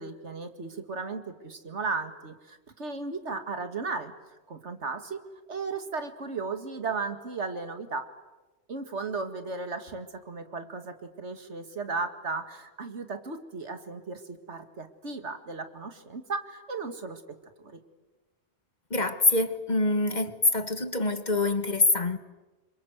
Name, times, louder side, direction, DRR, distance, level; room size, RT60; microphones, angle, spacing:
voice 1, 0.0-4.1 4.5-5.2 5.5-8.1 8.7-17.8, right 4 dB, 85° right, 2.3 m, -35 dB
voice 2, 18.9-22.2, left 3 dB, 40° left, 1.6 m, -25 dB
28.0 x 25.5 x 8.1 m
omnidirectional pair, 1.2 m